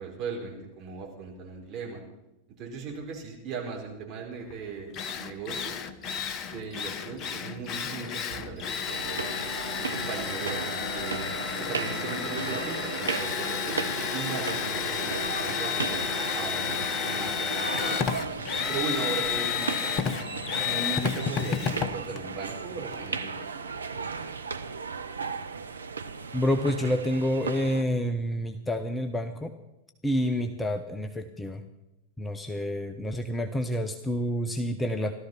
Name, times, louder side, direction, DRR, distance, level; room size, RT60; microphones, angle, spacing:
voice 1, 0.0-2.0 2.6-5.8 6.5-9.2 9.8-11.2 11.6-16.1 16.3-18.0 18.7-19.7 20.6-23.7, right 5 dB, 35° right, -1 dB, 4.6 m, -38 dB
Drill, 4.5-4.6 4.9-23.1, left 7 dB, 35° left, 1.0 m, -31 dB
sound 1, 8.9-27.8, right 5 dB, 75° right, 0.8 m, -36 dB
voice 2, 26.3-29.5 30.0-31.6 32.2-35.1, equal, 10° left, 7 dB, 0.9 m, -28 dB
16.5 x 13.0 x 5.7 m, 0.96 s
figure-of-eight pair, 90°, 0 cm